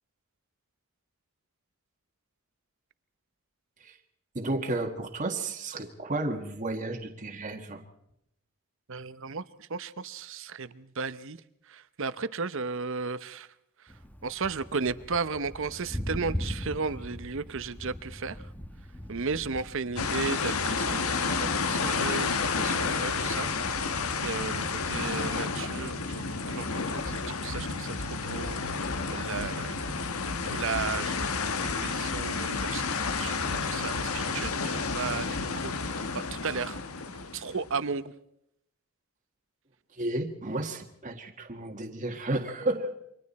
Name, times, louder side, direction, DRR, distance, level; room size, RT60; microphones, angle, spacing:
voice 1, 4.3-7.8 39.9-43.0, right 2 dB, 35° right, 1.7 m, -32 dB
voice 2, 8.9-11.4 11.7-13.5 13.8-13.9 14.2-18.5 19.1-23.9 24.2-36.8 37.3-38.1, right 4 dB, 60° right, 0.9 m, -35 dB
Thunder, 13.9-25.5, equal, 10° left, 1.1 m, -41 dB
sound 1, 20.0-37.8, left 4 dB, 80° left, 1.3 m, -31 dB
29.0 x 24.5 x 4.2 m
head